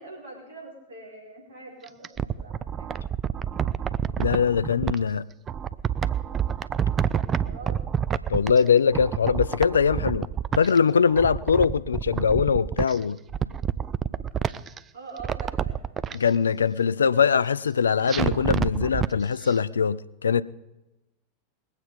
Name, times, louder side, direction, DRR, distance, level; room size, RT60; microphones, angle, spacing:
voice 1, 0.0-2.9 7.1-7.8 14.9-15.8, right 3 dB, 65° right, 5.3 m, -43 dB
sound 1, 1.8-5.0 5.5-8.7 8.9-10.8 11.1-13.0 13.3-14.8 15.2-16.2 18.1-19.1 19.5-19.6, right 8 dB, 25° right, 0.5 m, -28 dB
voice 2, 4.2-5.2 8.3-10.3 10.6-13.2 16.1-20.4, left 6 dB, 75° left, 0.4 m, -22 dB
21.0 x 8.3 x 5.2 m
figure-of-eight pair, 90°, 0 cm